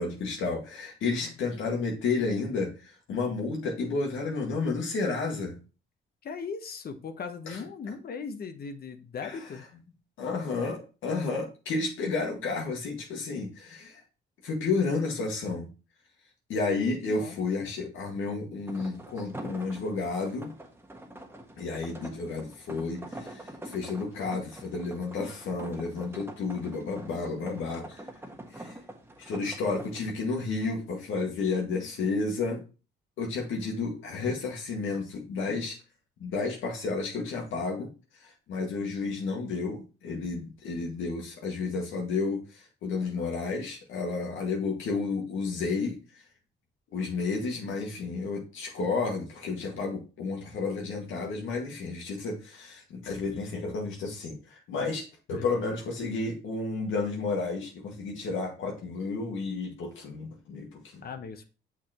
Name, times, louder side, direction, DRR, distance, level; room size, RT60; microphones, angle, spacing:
voice 1, 0.0-5.6 7.5-7.6 9.2-9.4 10.2-14.0 14.4-15.7 16.5-20.5 21.6-28.0 28.5-28.7 29.2-32.6 33.2-35.8 36.2-37.9 38.2-46.0 46.9-61.0, left 4 dB, 80° left, -1 dB, 1.9 m, -31 dB
voice 2, 6.2-9.6 17.0-17.7 55.3-55.6 61.0-61.4, left 5 dB, 50° left, 8 dB, 1.0 m, -39 dB
sound 1, 18.7-30.1, right 1 dB, 10° right, 1.3 m, -45 dB
6.5 x 5.8 x 3.0 m, 0.32 s
cardioid pair, 90°, 20 cm